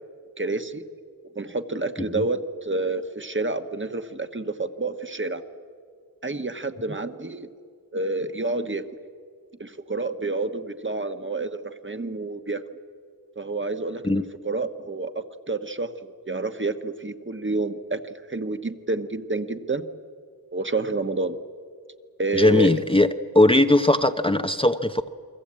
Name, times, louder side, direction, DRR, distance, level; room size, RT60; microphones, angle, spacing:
voice 1, 0.4-0.8 1.3-5.4 6.2-7.5 7.9-8.9 9.6-12.6 13.3-15.1 15.5-19.8 20.5-21.4 22.2-22.7, right 3 dB, 30° right, 8 dB, 1.3 m, -29 dB
voice 2, 22.3-23.1 23.3-25.1, left 1 dB, 15° left, 7 dB, 0.8 m, -19 dB
29.0 x 22.5 x 8.7 m, 2.1 s
wide cardioid pair, 95°, 37 cm